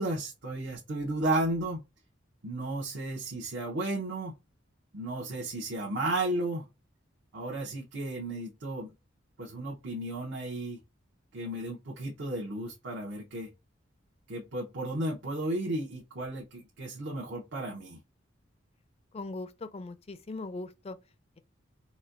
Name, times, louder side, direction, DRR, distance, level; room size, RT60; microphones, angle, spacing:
voice 1, 0.0-1.9 2.4-4.3 4.9-6.7 7.3-8.9 9.4-10.8 11.3-13.5 14.3-18.0, right 1 dB, 65° right, 0.8 m, -33 dB
voice 2, 19.1-21.0, left 2 dB, 30° left, 0.4 m, -39 dB
4.2 x 2.2 x 2.5 m
head